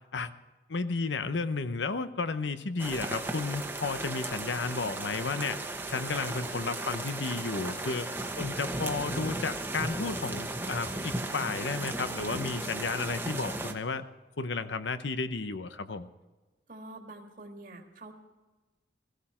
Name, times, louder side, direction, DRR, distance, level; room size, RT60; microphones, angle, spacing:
voice 1, 0.7-8.1 8.4-14.0 14.4-16.1, left 4 dB, 85° left, 12 dB, 0.8 m, -33 dB
sound 1, 2.8-13.7, right 2 dB, 10° right, 1.1 m, -36 dB
voice 2, 16.7-18.1, right 2 dB, 50° right, 2 dB, 1.8 m, -46 dB
17.0 x 15.5 x 4.4 m, 1.2 s
head